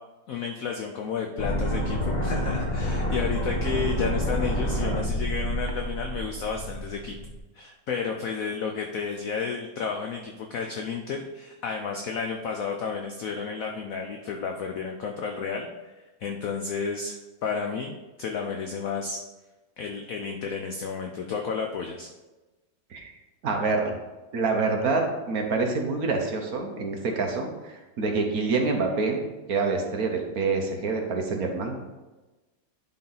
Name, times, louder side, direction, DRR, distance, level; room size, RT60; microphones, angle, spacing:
voice 1, 0.3-7.2 7.5-15.9 16.2-19.2 19.8-22.1, left 5 dB, 65° left, 2 dB, 0.9 m, -32 dB
sound 1, 1.4-7.4, equal, 30° left, 1.0 m, -28 dB
voice 2, 23.4-24.0 24.3-29.2 29.5-31.8, right 4 dB, 55° right, 2 dB, 1.4 m, -26 dB
10.5 x 4.2 x 4.0 m, 1.1 s
omnidirectional pair, 2.0 m